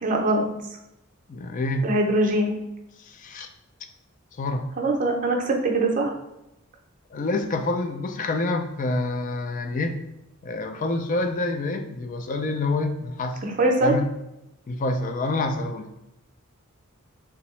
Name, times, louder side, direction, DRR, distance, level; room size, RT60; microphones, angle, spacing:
voice 1, 0.0-0.4 1.8-2.5 4.8-6.1 13.4-14.0, right 2 dB, 40° right, 0 dB, 0.6 m, -22 dB
voice 2, 1.3-1.9 3.0-3.5 4.4-4.7 7.1-10.0 10.4-13.4 13.8-14.1 14.7-15.9, left 2 dB, 40° left, 6 dB, 0.3 m, -27 dB
3.5 x 2.8 x 3.1 m, 0.87 s
head